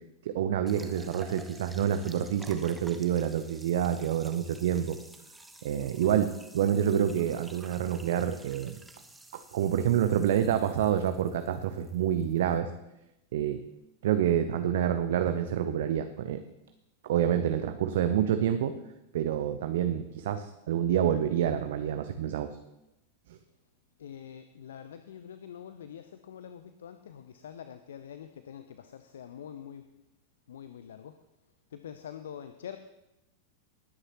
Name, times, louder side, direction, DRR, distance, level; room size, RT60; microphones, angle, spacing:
voice 1, 0.2-5.0 5.6-8.7 9.3-12.7 13.3-13.6 14.0-16.4 17.0-18.7 19.1-22.6 23.3-23.4, right 9 dB, 55° right, 9 dB, 0.7 m, -28 dB
sound 1, 0.7-12.6, right 2 dB, 5° right, 1.1 m, -52 dB
voice 2, 24.0-29.8 30.5-31.1 31.7-32.8, left 9 dB, 60° left, 10 dB, 0.6 m, -45 dB
19.5 x 9.7 x 3.0 m, 0.90 s
figure-of-eight pair, 90°, 0 cm